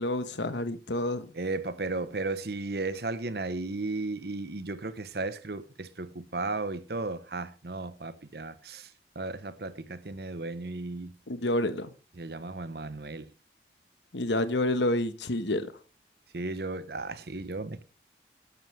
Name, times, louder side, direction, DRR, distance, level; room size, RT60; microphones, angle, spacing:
voice 1, 0.0-1.3 11.3-11.9 14.1-15.7, left 1 dB, 90° left, 1.2 m, -28 dB
voice 2, 1.3-8.9 9.1-11.1 12.2-13.3 16.3-17.8, right 3 dB, 60° right, 1.0 m, -35 dB
12.5 x 11.5 x 3.3 m
head